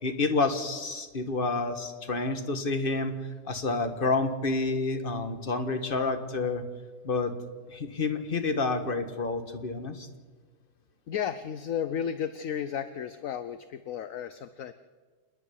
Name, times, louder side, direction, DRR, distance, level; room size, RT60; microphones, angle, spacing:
voice 1, 0.0-3.2 3.5-6.6 7.0-7.3 7.7-10.1, left 3 dB, 30° left, 7 dB, 1.6 m, -29 dB
voice 2, 11.1-14.7, left 8 dB, 60° left, 12 dB, 0.9 m, -33 dB
28.0 x 10.0 x 9.8 m, 1.4 s
omnidirectional pair, 2.0 m